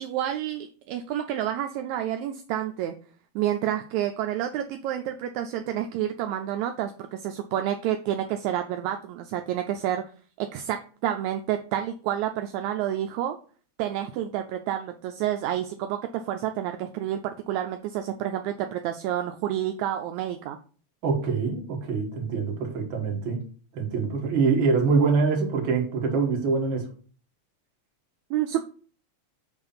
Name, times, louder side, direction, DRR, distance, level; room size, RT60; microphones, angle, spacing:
voice 1, 0.0-3.0 3.4-10.0 10.4-13.4 13.8-20.6 28.3-28.6, right 11 dB, 80° right, 1.8 m, -29 dB
voice 2, 21.0-23.4 23.7-26.9, right 4 dB, 45° right, 1.9 m, -24 dB
7.0 x 3.2 x 5.6 m
omnidirectional pair, 3.5 m